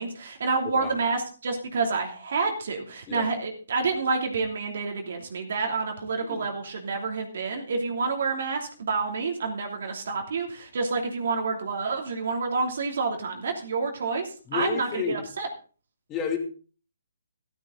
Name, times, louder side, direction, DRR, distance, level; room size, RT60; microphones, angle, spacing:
voice 1, 0.0-15.5, right 4 dB, 60° right, 2 dB, 2.8 m, -28 dB
voice 2, 0.6-1.0 3.1-3.3 6.2-6.5 14.5-15.2 16.1-16.4, left 6 dB, 20° left, 4 dB, 2.6 m, -31 dB
13.5 x 12.5 x 3.9 m, 0.38 s
hypercardioid pair, 150°, 0 cm